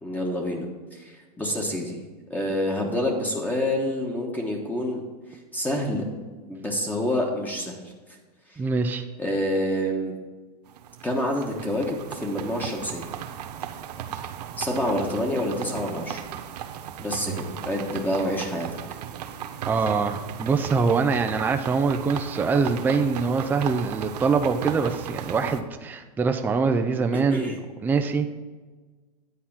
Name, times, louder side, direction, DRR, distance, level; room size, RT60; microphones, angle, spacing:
voice 1, 0.0-2.0 2.3-5.0 5.3-6.0 6.5-7.8 8.5-8.6 9.2-10.2 11.0-13.1 14.6-16.2 17.0-18.7 27.1-27.6, left 1 dB, 10° left, 0 dB, 1.2 m, -27 dB
voice 2, 8.6-9.1 19.7-27.5 27.8-28.3, right 4 dB, 10° right, 6 dB, 0.4 m, -24 dB
sound 1, 10.7-25.6, right 9 dB, 80° right, 0.8 m, -36 dB
9.5 x 4.2 x 7.2 m, 1.3 s
supercardioid pair, 130°, 20 cm